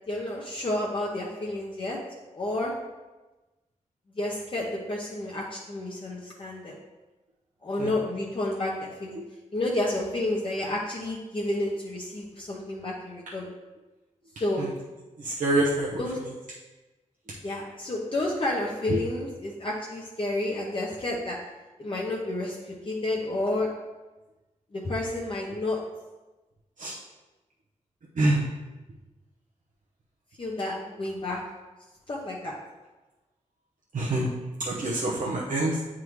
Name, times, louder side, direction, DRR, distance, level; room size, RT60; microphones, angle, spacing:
voice 1, 0.0-2.0 2.3-2.7 4.2-6.8 7.6-9.2 9.5-13.5 14.4-14.7 16.0-16.2 17.4-21.4 21.8-23.7 24.7-25.8 30.4-31.4 32.1-32.5, left 1 dB, 40° left, -4 dB, 0.8 m, -30 dB
voice 2, 15.2-16.0 18.9-19.0 26.8-26.9 28.2-28.4 33.9-34.3 34.6-35.8, right 2 dB, 80° right, -5 dB, 0.8 m, -26 dB
9.2 x 3.7 x 3.1 m, 1.1 s
wide cardioid pair, 120°, 13 cm